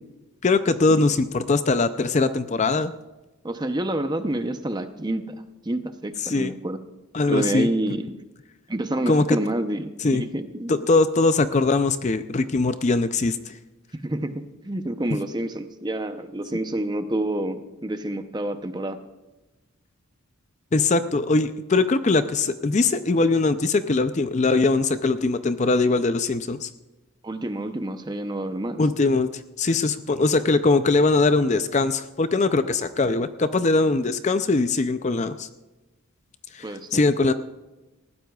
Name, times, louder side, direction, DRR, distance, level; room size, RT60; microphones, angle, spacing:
voice 1, 0.4-2.9 6.2-6.5 7.1-7.7 9.1-9.4 10.0-10.2 10.7-13.6 20.7-26.7 28.8-29.3 29.6-35.5 36.5-37.3, left 3 dB, 30° left, 11 dB, 0.4 m, -21 dB
voice 2, 3.4-5.2 5.6-6.8 7.3-8.1 8.7-10.8 14.0-19.0 27.2-28.8 36.6-37.0, right 1 dB, 20° right, 8 dB, 0.7 m, -28 dB
19.5 x 15.0 x 2.4 m, 1.1 s
head